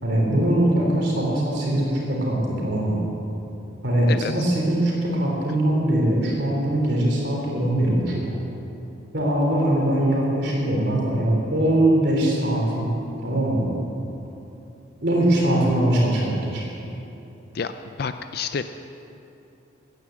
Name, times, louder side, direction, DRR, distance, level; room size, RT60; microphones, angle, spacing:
voice 1, 0.0-3.0 3.8-8.2 9.1-12.9 13.2-13.7 15.0-16.6, right 1 dB, 55° right, -2 dB, 3.6 m, -21 dB
voice 2, 17.5-18.6, left 5 dB, 50° left, 9 dB, 0.4 m, -29 dB
16.0 x 9.8 x 7.7 m, 3.0 s
head